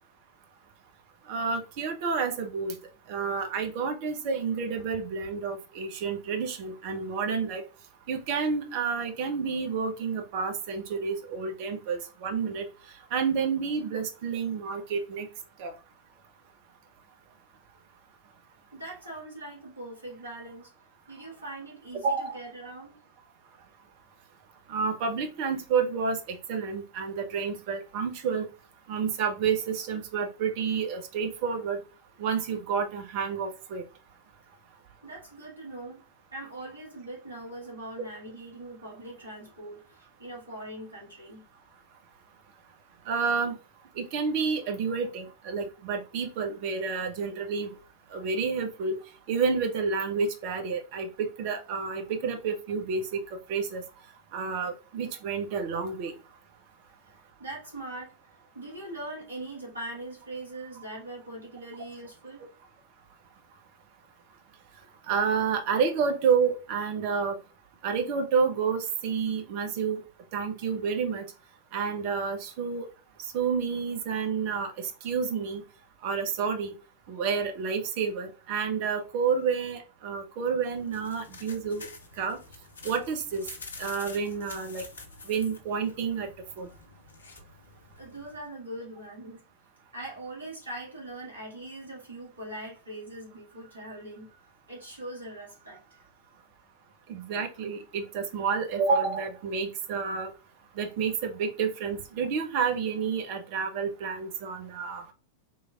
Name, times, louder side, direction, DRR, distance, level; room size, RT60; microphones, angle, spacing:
voice 1, 1.3-2.8 3.1-7.6 8.1-12.7 13.1-15.3 15.6-15.7 22.0-22.4 24.7-28.5 28.9-31.8 32.2-33.8 43.1-43.6 44.0-47.7 48.1-49.0 49.3-53.8 54.3-56.1 65.1-67.4 67.8-70.0 70.3-71.3 71.7-72.9 73.2-75.6 76.0-76.7 77.1-81.9 82.2-82.4 82.8-83.5 83.8-84.8 85.3-86.3 86.6-86.7 97.1-100.3 100.8-105.1, right 5 dB, 45° right, 0.8 m, -29 dB
voice 2, 18.7-20.7 21.1-23.0 35.0-36.0 36.3-41.4 57.1-58.1 58.5-62.4 88.0-89.4 89.9-94.4 94.7-96.1, right 1 dB, 75° right, 1.8 m, -41 dB
sound 1, 80.6-88.5, left 4 dB, 70° left, 0.7 m, -47 dB
3.9 x 3.2 x 2.4 m
figure-of-eight pair, 90°, 0 cm